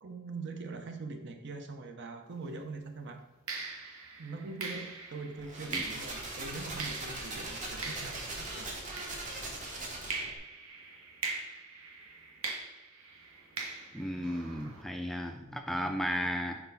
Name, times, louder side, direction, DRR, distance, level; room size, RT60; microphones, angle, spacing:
voice 1, 0.0-3.2 4.2-8.7, right 3 dB, 60° right, 6 dB, 0.7 m, -42 dB
sound 1, 2.3-2.5 3.5-9.6 10.1-14.8, right 4 dB, 80° right, 1.1 m, -42 dB
sound 2, 5.4-10.4, right 2 dB, 40° right, 1.2 m, -40 dB
voice 2, 13.9-16.6, equal, ahead, 4 dB, 0.3 m, -34 dB
4.5 x 4.2 x 5.4 m, 0.99 s
head